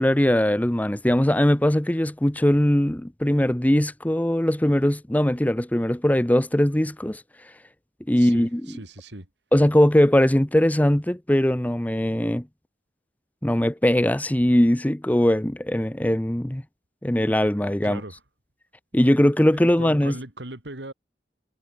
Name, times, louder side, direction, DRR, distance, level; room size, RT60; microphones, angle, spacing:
voice 1, 0.0-7.2 8.1-8.6 9.5-12.4 13.4-16.6 17.0-18.0 18.9-20.1, left 1 dB, 10° left, 0.7 m, -20 dB
voice 2, 8.2-9.3 17.8-18.2 19.5-20.9, right 2 dB, 80° right, 3.5 m, -39 dB
head